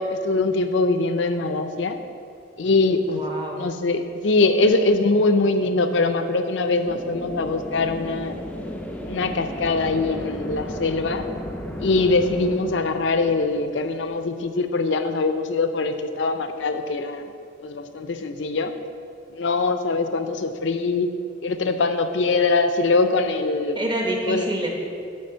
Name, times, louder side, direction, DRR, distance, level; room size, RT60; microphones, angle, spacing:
voice 1, 0.0-2.0 2.6-3.2 3.6-8.4 9.0-11.3 11.8-17.3 17.6-18.7 19.3-21.1 21.4-23.8 24.3-24.5, left 3 dB, 70° left, 8 dB, 0.5 m, -22 dB
voice 2, 3.1-3.6 22.3-22.4 23.7-24.7, right 1 dB, 25° right, 0 dB, 1.0 m, -27 dB
sound 1, 6.9-14.4, equal, 10° left, 0.4 m, -35 dB
9.9 x 3.3 x 6.7 m, 2.4 s
head